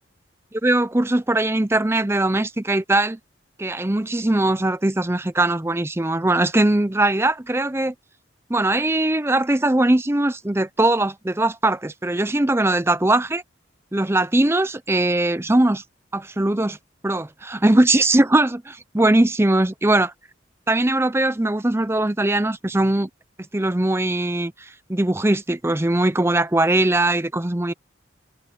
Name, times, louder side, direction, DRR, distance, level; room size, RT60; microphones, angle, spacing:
voice 1, 0.5-3.2 3.6-7.9 8.5-13.4 13.9-15.8 16.1-16.8 17.0-20.1 20.7-23.1 23.5-24.5 24.9-27.7, right 2 dB, 15° right, 0.6 m, -20 dB
head